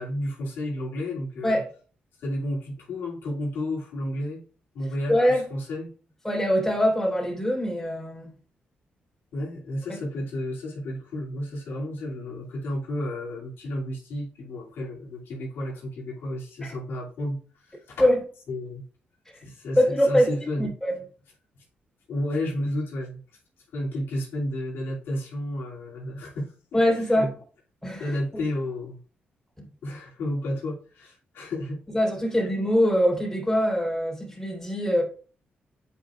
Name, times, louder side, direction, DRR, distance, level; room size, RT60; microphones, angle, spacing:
voice 1, 0.0-1.6 2.2-4.4 4.7-5.9 9.3-17.4 17.7-18.1 18.5-18.8 19.4-20.7 22.1-23.2 23.7-26.5 27.1-27.3 28.0-29.0 29.8-31.8, left 1 dB, 85° left, 2.5 m, -32 dB
voice 2, 5.1-5.4 6.2-8.3 9.9-10.0 16.6-16.7 18.0-18.2 19.7-20.3 20.6-20.9 26.7-27.3 27.8-28.4 31.9-35.0, equal, 5° left, 3.5 m, -23 dB
8.5 x 5.2 x 2.4 m
cardioid pair, 100°, 4 cm